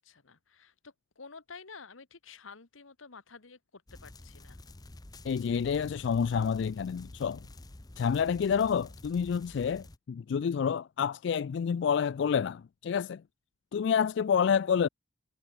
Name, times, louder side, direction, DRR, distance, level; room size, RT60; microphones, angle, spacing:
voice 1, 0.0-4.6, left 5 dB, 85° left, 1.5 m, -51 dB
sound 1, 3.9-10.0, left 2 dB, 20° left, 0.7 m, -49 dB
voice 2, 5.2-7.4 8.0-13.2 13.7-14.9, left 7 dB, 60° left, 0.3 m, -28 dB
head